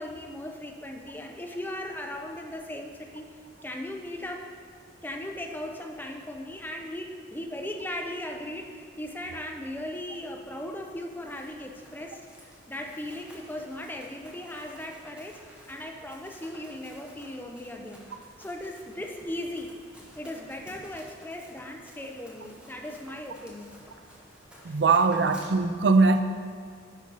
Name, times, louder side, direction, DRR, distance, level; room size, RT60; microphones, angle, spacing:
voice 1, 0.0-3.3 3.6-4.5 5.0-12.2 12.7-15.4 15.7-18.1 18.4-19.8 20.1-23.7 24.6-24.8, left 1 dB, 10° left, 2 dB, 0.6 m, -38 dB
Run, 11.1-25.5, equal, 5° right, 1.1 m, -53 dB
voice 2, 24.6-26.2, right 4 dB, 60° right, 9 dB, 0.5 m, -21 dB
9.9 x 5.3 x 3.9 m, 2.1 s
head